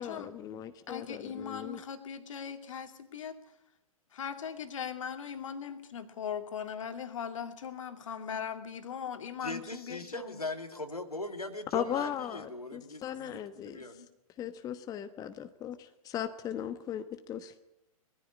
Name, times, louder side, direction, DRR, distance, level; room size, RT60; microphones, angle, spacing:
voice 1, 0.0-1.8 11.7-13.8 14.4-17.6, left 10 dB, 20° left, 9 dB, 1.1 m, -37 dB
voice 2, 0.9-3.4 4.1-10.4, left 7 dB, 60° left, 7 dB, 2.5 m, -39 dB
voice 3, 9.4-14.1, left 2 dB, 90° left, 6 dB, 2.3 m, -40 dB
20.0 x 14.5 x 9.8 m, 0.85 s
figure-of-eight pair, 115°, 19 cm